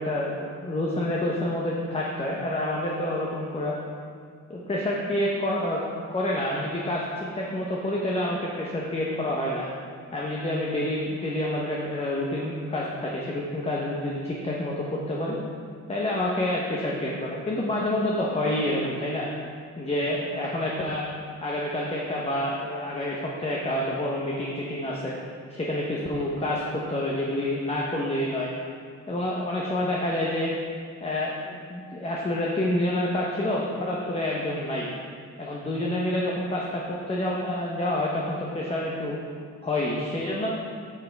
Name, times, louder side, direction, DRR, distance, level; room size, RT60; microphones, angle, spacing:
voice 1, 0.0-3.7 4.5-5.8 6.1-9.7 10.1-15.4 15.9-19.3 19.8-21.1 21.4-25.2 25.5-28.5 29.1-30.5 31.0-34.9 35.4-39.2 39.6-40.5, left 1 dB, 20° left, -3 dB, 0.9 m, -28 dB
8.8 x 6.0 x 3.4 m, 2.1 s
cardioid pair, 115°, 29 cm